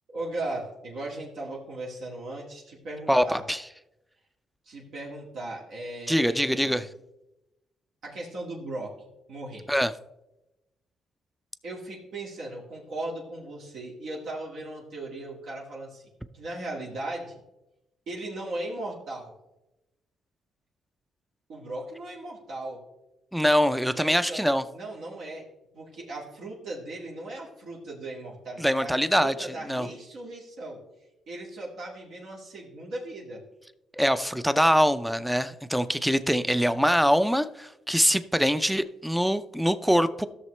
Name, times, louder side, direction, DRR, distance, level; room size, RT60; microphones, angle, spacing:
voice 1, 0.1-3.4 4.7-6.8 8.0-9.0 9.3-9.7 11.6-16.0 16.3-17.4 18.1-19.3 21.5-22.8 23.9-24.4 24.7-25.5 25.7-30.8 31.3-33.4, right 2 dB, 70° right, -4 dB, 2.0 m, -37 dB
voice 2, 3.1-3.6 6.1-6.9 9.7-9.9 23.3-24.6 28.6-29.9 33.9-40.3, equal, ahead, 12 dB, 0.4 m, -24 dB
14.0 x 6.6 x 3.2 m, 0.94 s
cardioid pair, 90°, 0 cm